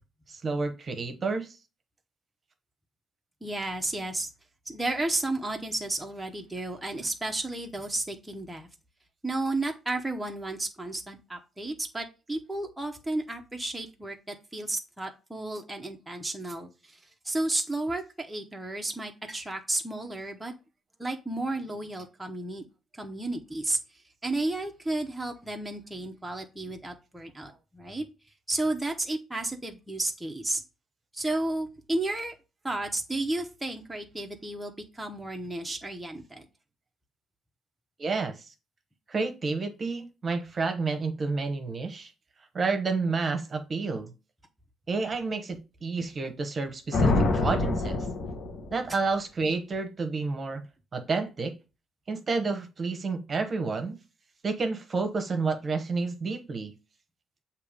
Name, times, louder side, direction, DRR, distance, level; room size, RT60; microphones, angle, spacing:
voice 1, 0.3-1.6 38.0-38.5 39.1-42.1 42.5-44.1 44.9-48.1 48.7-50.6 50.9-51.5 52.1-54.0 54.4-56.7, right 4 dB, 40° right, 6 dB, 1.0 m, -30 dB
voice 2, 3.4-4.3 4.7-8.7 9.2-20.5 21.0-22.6 22.9-28.1 28.5-30.6 31.1-32.3 32.6-36.4, right 2 dB, 5° right, 2 dB, 0.9 m, -32 dB
sound 1, 46.9-48.9, left 2 dB, 65° left, 1.2 m, -26 dB
6.9 x 2.9 x 5.0 m, 0.30 s
cardioid pair, 90°, 0 cm